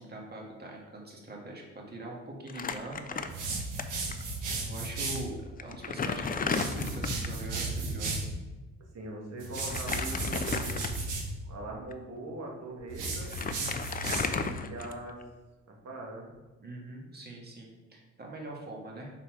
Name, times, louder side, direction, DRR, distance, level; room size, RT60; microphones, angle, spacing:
voice 1, 0.0-3.6 4.6-8.2 16.6-19.1, right 1 dB, 35° right, -1 dB, 1.8 m, -43 dB
Crumpling crinkling, 2.5-3.8 4.1-4.2 5.1-5.2 5.6-7.4 9.6-11.2 11.8-11.9 12.8-12.9 13.1-15.2, left 5 dB, 30° left, 0.5 m, -34 dB
sound 1, 3.3-5.3 6.4-8.3 9.4-11.3 12.9-14.5, right 3 dB, 85° right, 1.6 m, -34 dB
voice 2, 8.9-10.9 11.4-13.4 14.5-15.2 15.7-16.3, right 1 dB, 55° right, -1 dB, 1.9 m, -41 dB
6.1 x 4.2 x 4.9 m, 1.2 s
cardioid pair, 90°, 30 cm